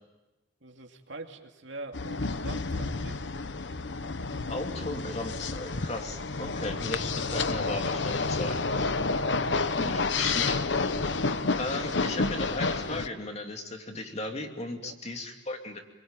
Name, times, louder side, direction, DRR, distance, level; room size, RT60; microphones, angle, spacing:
voice 1, 0.6-3.3 9.7-10.1 14.8-15.0, right 2 dB, 75° right, 3 dB, 2.6 m, -44 dB
sound 1, 1.9-13.1, left 3 dB, 70° left, 1.0 m, -30 dB
voice 2, 4.5-8.8 9.8-10.6 11.6-15.8, left 2 dB, 35° left, 3 dB, 2.7 m, -36 dB
28.5 x 22.0 x 9.0 m, 1.1 s
head